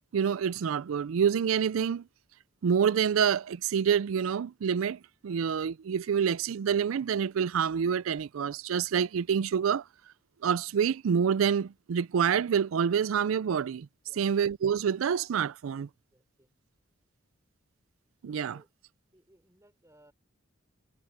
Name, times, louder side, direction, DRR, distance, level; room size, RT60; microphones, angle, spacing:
voice 1, 0.1-2.0 2.6-9.8 10.4-13.9 14.2-15.9 18.2-18.6, right 7 dB, 90° right, 0.4 m, -27 dB
voice 2, 14.1-14.4 16.1-16.5 18.5-18.7 19.1-20.1, right 1 dB, 15° right, 5.1 m, -62 dB
head